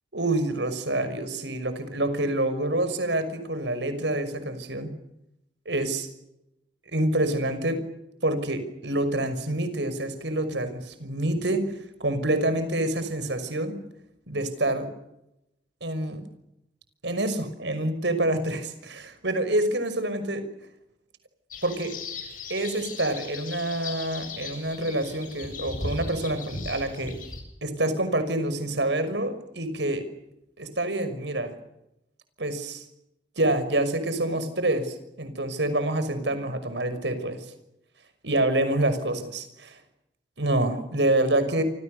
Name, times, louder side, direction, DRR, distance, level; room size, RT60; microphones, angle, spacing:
voice 1, 0.1-4.9 5.7-6.1 6.9-7.8 8.2-11.7 12.0-13.8 14.3-14.9 15.8-16.2 17.0-20.5 21.6-21.9 22.5-27.1 27.6-30.0 30.6-31.5 32.4-32.9 33.4-37.5 38.2-39.8 40.4-41.6, right 1 dB, 80° right, 10 dB, 5.9 m, -27 dB
sound 1, 21.5-27.4, left 3 dB, 50° left, 7.9 m, -37 dB
29.0 x 27.5 x 6.7 m, 0.86 s
head